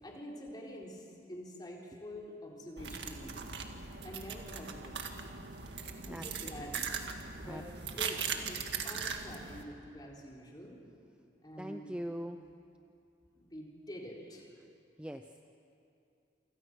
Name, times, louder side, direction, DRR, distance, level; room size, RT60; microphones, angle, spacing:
voice 1, 0.0-3.5 4.0-4.9 6.0-6.8 7.3-7.7 8.0-10.8 11.4-11.9 13.3-14.5, equal, 25° left, -2 dB, 4.1 m, -47 dB
sound 1, 2.8-9.6, right 6 dB, 75° right, 1.9 m, -40 dB
voice 2, 5.7-6.7 7.4-7.6 11.6-12.4 15.0-15.5, equal, 5° right, 6 dB, 0.6 m, -43 dB
28.0 x 26.5 x 6.4 m, 2.6 s
head